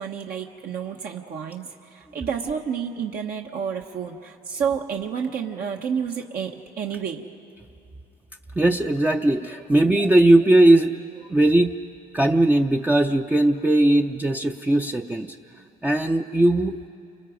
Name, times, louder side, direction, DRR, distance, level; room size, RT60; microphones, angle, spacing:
voice 1, 0.0-7.3, right 7 dB, 60° right, 1 dB, 1.2 m, -30 dB
voice 2, 8.6-11.0 11.3-11.7 12.1-15.4 15.8-16.9, right 1 dB, 10° right, 3 dB, 0.6 m, -19 dB
29.0 x 26.0 x 5.1 m, 2.6 s
cardioid pair, 110°, 17 cm